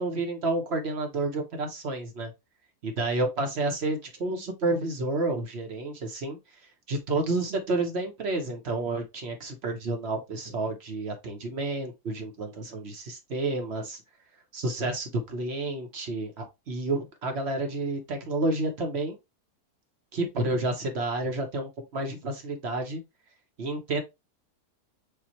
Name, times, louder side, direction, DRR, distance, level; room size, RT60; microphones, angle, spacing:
voice 1, 0.0-2.3 2.8-6.4 6.9-14.0 14.5-19.2 20.1-23.0 23.6-24.0, right 2 dB, 45° right, 1.1 m, -30 dB
6.9 x 2.4 x 2.9 m
omnidirectional pair, 1.7 m